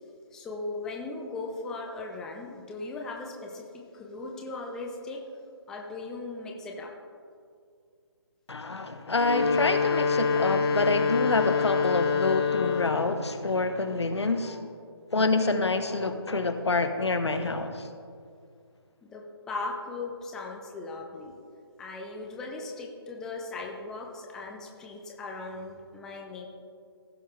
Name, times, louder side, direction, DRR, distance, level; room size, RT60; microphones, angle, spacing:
voice 1, 0.3-5.2 5.7-6.9 19.0-21.3 21.8-26.5, left 3 dB, 5° left, -1 dB, 0.4 m, -38 dB
voice 2, 8.5-14.7 15.1-17.9, left 3 dB, 85° left, 8 dB, 1.0 m, -27 dB
sound 1, 9.1-13.2, left 5 dB, 65° left, 1.8 m, -26 dB
16.0 x 5.6 x 3.2 m, 2.3 s
figure-of-eight pair, 155°, 14 cm